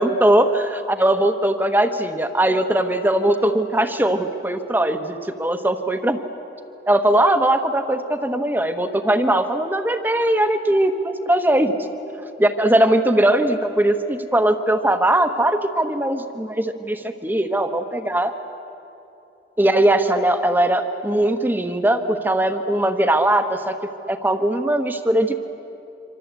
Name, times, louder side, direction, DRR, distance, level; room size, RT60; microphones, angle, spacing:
voice 1, 0.0-6.2 6.9-11.7 12.4-18.3 19.6-23.7 24.1-25.4, right 1 dB, 10° right, 7 dB, 1.2 m, -20 dB
26.5 x 25.5 x 8.2 m, 2.8 s
head